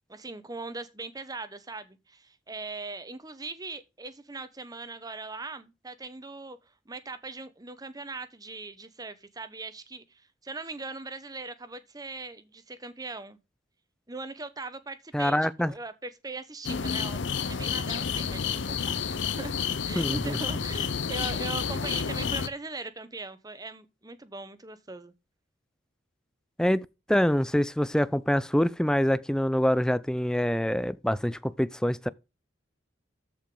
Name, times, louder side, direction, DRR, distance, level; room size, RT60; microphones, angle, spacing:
voice 1, 0.1-6.6 6.9-13.4 14.1-19.5 19.9-25.1, right 3 dB, 20° right, 0.9 m, -40 dB
voice 2, 15.1-15.7 20.0-20.4 26.6-32.1, equal, 5° left, 0.4 m, -25 dB
sound 1, 16.6-22.5, left 6 dB, 65° left, 0.6 m, -30 dB
13.5 x 5.2 x 3.8 m
head